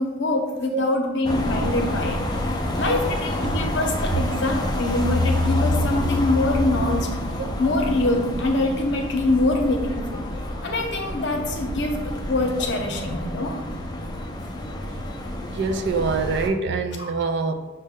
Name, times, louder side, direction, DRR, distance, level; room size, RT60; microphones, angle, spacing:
voice 1, 0.0-2.2 2.8-7.1 7.6-10.2 10.6-13.6 17.0-17.1, left 2 dB, 65° left, 2 dB, 0.7 m, -24 dB
sound 1, 1.2-16.5, left 1 dB, 20° left, 0.4 m, -27 dB
voice 2, 15.5-17.5, right 4 dB, 60° right, 6 dB, 0.4 m, -25 dB
6.3 x 2.2 x 3.5 m, 1.2 s
head